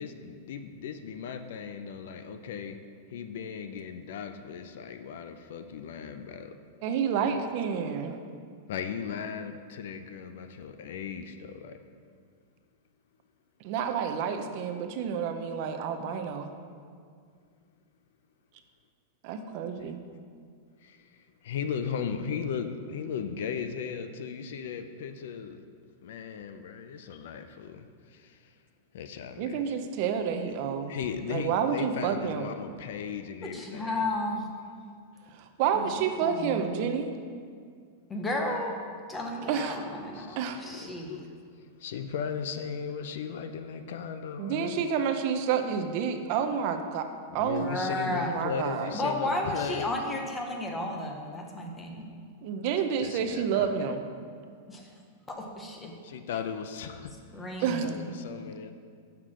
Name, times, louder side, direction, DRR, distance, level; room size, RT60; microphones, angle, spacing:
voice 1, 0.0-2.8 3.1-6.6 7.2-7.4 8.7-11.8 19.8-19.9 20.8-25.6 26.0-28.4 28.9-29.6 30.9-34.1 40.1-41.3 41.8-44.8 47.3-49.9 53.0-53.8 56.0-57.1 57.8-58.7, left 7 dB, 65° left, 9 dB, 0.5 m, -37 dB
voice 2, 6.8-8.2 13.6-16.5 19.2-20.0 29.4-30.9 31.3-32.5 35.3-37.1 39.5-39.8 40.4-40.6 44.4-47.1 47.3-47.8 48.1-48.9 52.4-54.0 57.6-57.9, right 7 dB, 40° right, 7 dB, 0.6 m, -29 dB
voice 3, 33.4-34.5 35.7-35.9 36.2-36.6 38.1-38.7 39.1-41.3 47.6-48.5 48.9-52.1 54.7-54.9 55.3-56.0 57.3-58.0, left 1 dB, 10° left, 1 dB, 0.8 m, -33 dB
6.6 x 5.8 x 6.2 m, 2.1 s
supercardioid pair, 165°, 0 cm